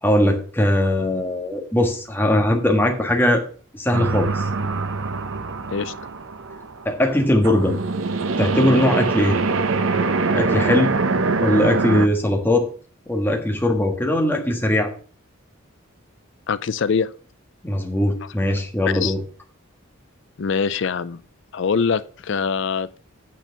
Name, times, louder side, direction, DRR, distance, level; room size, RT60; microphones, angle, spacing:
voice 1, 0.0-3.4 3.7-4.5 6.8-7.8 8.4-9.4 10.3-10.9 11.4-12.7 13.1-14.9 17.6-19.2, left 1 dB, 10° left, 1.4 m, -20 dB
sound 1, 3.9-7.2 7.4-12.1, right 3 dB, 70° right, 0.8 m, -23 dB
voice 2, 16.5-17.1 19.0-19.1 20.4-21.2 21.5-23.0, left 5 dB, 60° left, 0.4 m, -23 dB
8.5 x 4.4 x 6.7 m
head